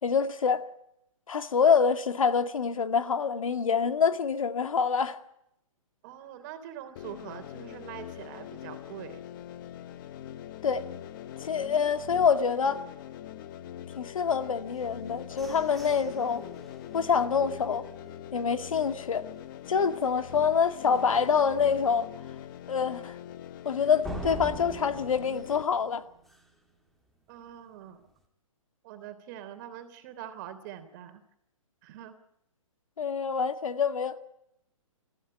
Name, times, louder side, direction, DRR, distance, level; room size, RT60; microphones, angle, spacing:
voice 1, 0.0-0.7 1.3-5.2 10.6-10.9 11.4-12.8 14.0-16.4 16.9-17.9 18.3-19.2 19.7-22.1 22.7-23.2 23.6-26.0 33.0-34.2, left 6 dB, 75° left, 2.2 m, -26 dB
voice 2, 6.0-9.2 27.3-28.0 28.8-31.2 31.8-32.1, right 10 dB, 35° right, 3.3 m, -44 dB
sound 1, 7.0-25.6, left 11 dB, 40° left, 1.3 m, -43 dB
sound 2, 14.8-18.6 19.1-19.2 19.6-20.0 20.4-20.5 20.9-21.0 24.0-26.7, right 1 dB, ahead, 2.5 m, -44 dB
26.5 x 15.0 x 10.0 m
hypercardioid pair, 140°, 17 cm